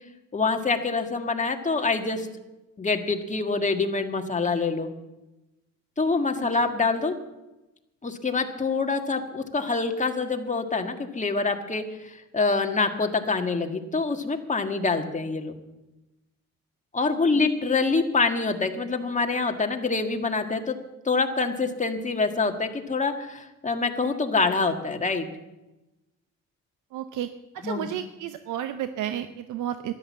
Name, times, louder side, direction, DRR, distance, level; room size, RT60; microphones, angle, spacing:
voice 1, 0.3-2.3 2.8-4.9 6.0-7.2 8.0-15.6 16.9-20.8 21.1-25.3 27.6-27.9, left 4 dB, 25° left, 5 dB, 1.7 m, -26 dB
voice 2, 17.1-17.5 26.9-27.3 27.5-29.9, right 11 dB, 85° right, 10 dB, 0.7 m, -32 dB
13.5 x 11.0 x 7.4 m, 1.0 s
cardioid pair, 90°, 30 cm